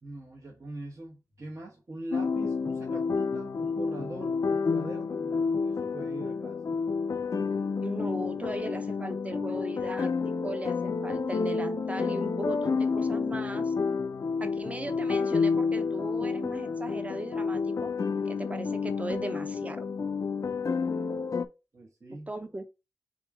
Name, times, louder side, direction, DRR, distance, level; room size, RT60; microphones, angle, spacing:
voice 1, 0.0-6.8 21.7-22.3, right 2 dB, 55° right, 1.1 m, -42 dB
sound 1, 2.1-21.5, left 5 dB, 60° left, 0.4 m, -30 dB
voice 2, 7.8-13.7 14.4-17.9 18.3-19.9 22.3-22.7, right 1 dB, 20° right, 0.7 m, -37 dB
3.7 x 2.9 x 4.6 m
wide cardioid pair, 65°, 6 cm